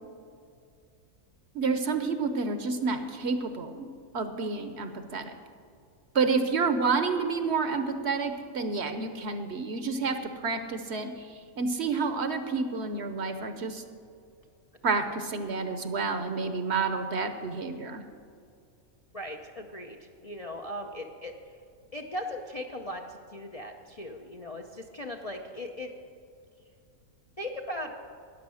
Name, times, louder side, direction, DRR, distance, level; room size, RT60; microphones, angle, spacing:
voice 1, 1.5-3.9 4.1-5.4 6.1-11.3 11.6-13.8 14.8-18.0, right 4 dB, 55° right, 8 dB, 1.0 m, -29 dB
voice 2, 19.1-21.3 21.9-25.9 27.4-27.9, left 1 dB, 40° left, 1 dB, 0.5 m, -38 dB
13.0 x 9.5 x 6.3 m, 2.4 s
omnidirectional pair, 1.5 m